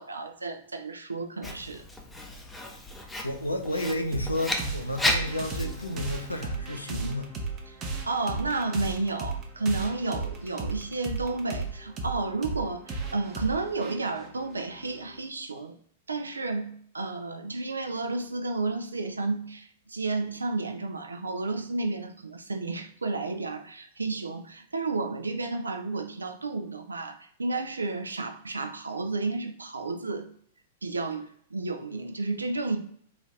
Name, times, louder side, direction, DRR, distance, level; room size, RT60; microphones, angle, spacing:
voice 1, 0.0-1.8 7.7-7.8 8.1-15.8 16.1-30.3 30.8-31.2 31.5-32.8, right 3 dB, 80° right, 7 dB, 0.4 m, -32 dB
Writing, 1.4-6.4, left 1 dB, 5° left, 0.5 m, -34 dB
voice 2, 3.2-7.3, left 1 dB, 85° left, 5 dB, 0.5 m, -31 dB
sound 1, 4.1-15.2, right 3 dB, 30° right, 0.7 m, -35 dB
3.8 x 2.5 x 3.2 m, 0.63 s
figure-of-eight pair, 100°, 0 cm